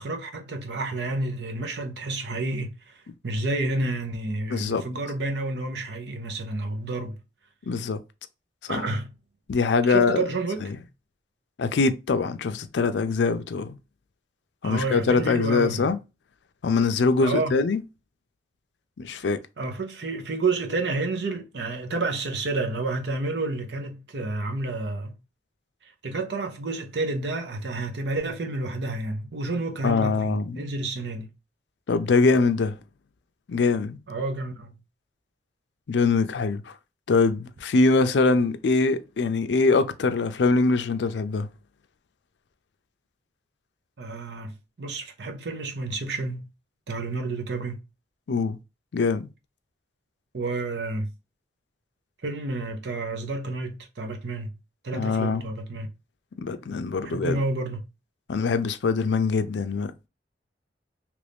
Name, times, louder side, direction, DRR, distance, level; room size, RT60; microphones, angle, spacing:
voice 1, 0.0-3.0 3.2-7.2 8.7-9.1 9.9-10.7 14.6-15.9 17.2-17.6 19.2-19.3 19.6-25.1 25.8-31.3 34.1-34.8 44.0-44.5 44.8-46.5 46.9-47.8 50.3-51.1 52.2-54.5 54.8-55.9 57.0-57.8, right 2 dB, 70° right, 0.7 m, -30 dB
voice 2, 4.5-4.8 7.7-8.0 8.7-8.8 9.5-10.2 11.6-13.8 14.6-16.0 16.6-17.8 19.0-19.4 29.8-30.6 31.9-32.7 33.5-34.0 35.9-36.6 37.1-41.5 48.3-48.6 48.9-49.3 54.9-55.4 56.4-57.4 58.3-59.9, left 4 dB, 75° left, 0.4 m, -23 dB
3.0 x 2.5 x 3.4 m
head